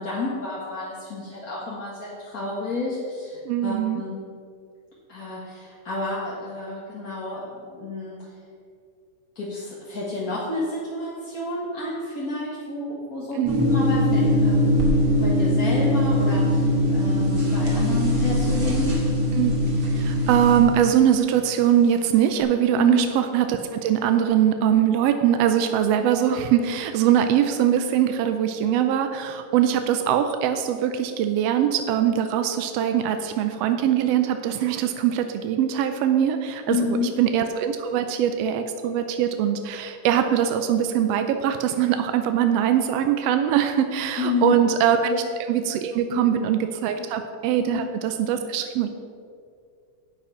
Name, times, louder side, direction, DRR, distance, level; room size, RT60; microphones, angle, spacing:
voice 1, 0.0-4.2 5.1-8.3 9.3-13.4 13.7-14.7 15.1-19.0 22.7-23.0 36.7-37.1 44.2-44.6 45.0-45.2 46.1-46.2 47.6-48.0, left 3 dB, 35° left, -7 dB, 1.6 m, -30 dB
voice 2, 3.5-4.0 13.3-13.7 19.3-19.5 20.0-48.9, right 9 dB, 80° right, 7 dB, 1.4 m, -22 dB
sound 1, 13.4-20.6, left 1 dB, 45° right, 2.8 m, -21 dB
9.9 x 8.6 x 5.7 m, 2.3 s
omnidirectional pair, 3.4 m